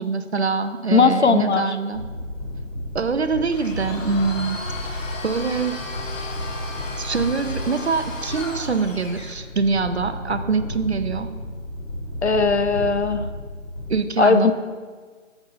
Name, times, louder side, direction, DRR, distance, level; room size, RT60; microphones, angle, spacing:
voice 1, 0.0-2.0 2.9-4.6 4.9-5.8 7.0-11.3 13.9-14.5, right 4 dB, 55° right, 10 dB, 0.5 m, -24 dB
voice 2, 0.9-1.8 12.2-13.2 14.2-14.5, left 4 dB, 60° left, 9 dB, 0.6 m, -18 dB
sound 1, 1.9-14.0, left 1 dB, 30° left, 1.6 m, -33 dB
Domestic sounds home sounds, 3.5-9.4, left 3 dB, 75° left, 1.2 m, -35 dB
7.1 x 5.3 x 5.4 m, 1.5 s
figure-of-eight pair, 170°, 39 cm